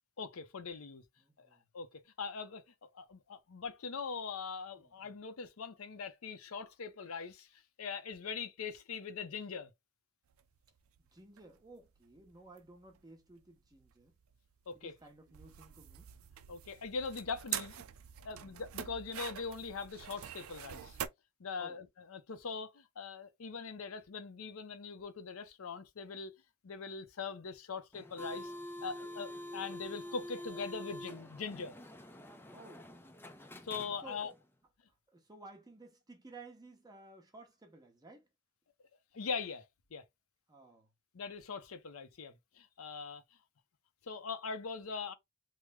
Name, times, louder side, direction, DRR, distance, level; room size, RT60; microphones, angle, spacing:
voice 1, 0.2-1.0 1.4-1.5 1.7-2.6 2.9-7.5 7.8-9.7 14.7-14.9 16.5-17.8 18.2-21.0 21.4-26.4 26.6-28.5 28.8-31.7 33.6-34.3 39.1-39.6 39.9-40.0 41.1-43.2 44.0-45.1, left 5 dB, 85° left, 0.6 m, -41 dB
voice 2, 1.2-1.7 4.8-4.9 11.0-14.1 14.7-16.1 18.3-18.6 21.6-21.8 32.5-32.9 34.0-34.4 34.9-38.3 40.5-40.9, right 3 dB, 20° right, 0.8 m, -56 dB
sound 1, 10.3-21.1, right 10 dB, 70° right, 0.4 m, -46 dB
sound 2, 27.9-34.4, left 1 dB, 10° left, 0.4 m, -47 dB
3.2 x 2.1 x 3.3 m
head